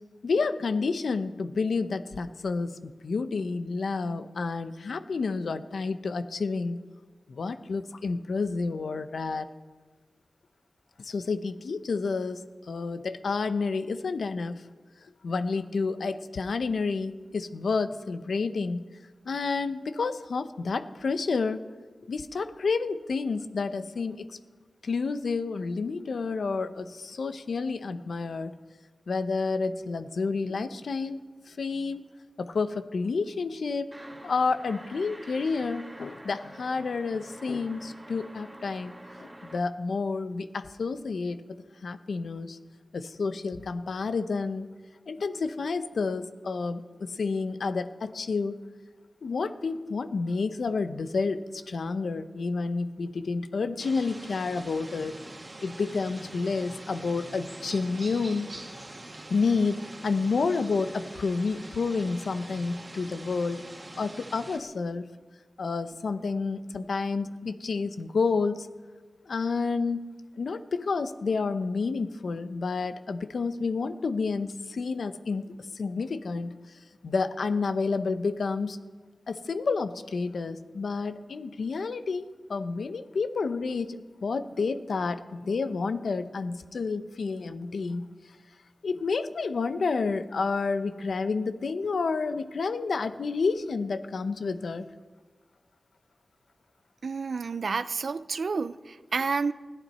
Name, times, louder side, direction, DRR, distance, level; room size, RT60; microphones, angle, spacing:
voice 1, 0.2-6.8 7.3-9.5 11.0-14.6 15.2-18.9 19.3-21.6 22.1-24.4 24.8-28.5 29.1-32.0 32.4-33.9 34.2-42.6 42.9-44.7 45.1-48.6 49.2-55.1 55.6-58.5 59.3-63.6 63.9-65.1 65.6-68.7 69.3-76.6 77.0-78.8 79.3-88.1 88.8-94.9, left 4 dB, 80° left, 10 dB, 0.8 m, -30 dB
sound 1, 33.9-39.6, right 1 dB, 15° right, 1.7 m, -47 dB
sound 2, 53.8-64.6, right 1 dB, 35° right, 2.0 m, -44 dB
voice 2, 97.0-99.5, right 4 dB, 70° right, 15 dB, 0.5 m, -30 dB
20.5 x 14.5 x 4.3 m, 1.4 s
cardioid pair, 60°, 0 cm